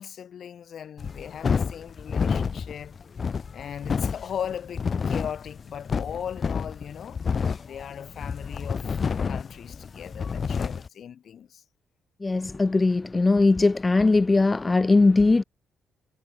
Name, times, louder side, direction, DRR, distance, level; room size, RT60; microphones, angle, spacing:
voice 1, 0.0-3.0 3.5-7.2 7.6-11.6, left 8 dB, 60° left, 6.0 m, -38 dB
sound 1, 1.0-10.9, left 6 dB, 40° left, 1.9 m, -29 dB
voice 2, 12.2-15.4, left 3 dB, 20° left, 1.3 m, -20 dB
cardioid pair, 100°, 0 cm